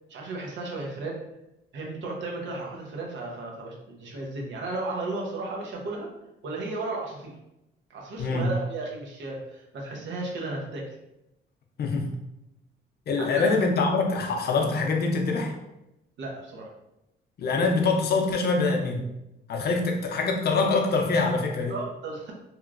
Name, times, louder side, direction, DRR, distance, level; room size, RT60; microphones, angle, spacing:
voice 1, 0.1-1.2 1.7-6.1 6.4-7.3 7.9-10.8 13.2-13.6 16.2-16.7 21.7-22.3, right 2 dB, 70° right, -1 dB, 0.8 m, -34 dB
voice 2, 8.2-8.5 11.8-12.1 13.1-15.5 17.4-19.0 19.5-21.8, left 3 dB, 55° left, 3 dB, 0.5 m, -24 dB
2.9 x 2.4 x 2.4 m, 0.88 s
cardioid pair, 90°, 20 cm